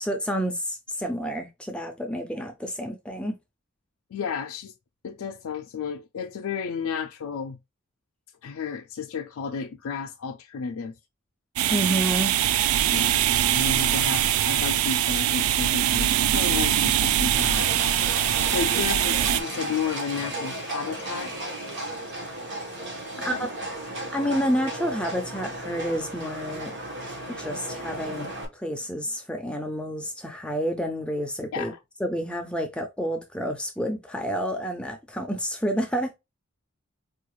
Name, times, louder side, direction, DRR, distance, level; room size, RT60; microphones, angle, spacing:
voice 1, 0.0-3.3 11.7-12.3 23.2-23.4 24.1-26.7 27.4-31.7 32.0-36.1, equal, 5° left, 0.4 m, -29 dB
voice 2, 4.1-4.7 5.0-7.6 8.4-10.9 12.9-13.2 13.5-17.7 18.4-21.3 23.1-23.5 31.5-31.8, left 6 dB, 75° left, 0.4 m, -32 dB
sound 1, 11.6-19.4, right 11 dB, 80° right, 0.3 m, -23 dB
Livestock farm animals working animals, 17.3-28.4, right 1 dB, 55° right, 1.2 m, -34 dB
4.6 x 2.4 x 3.1 m
head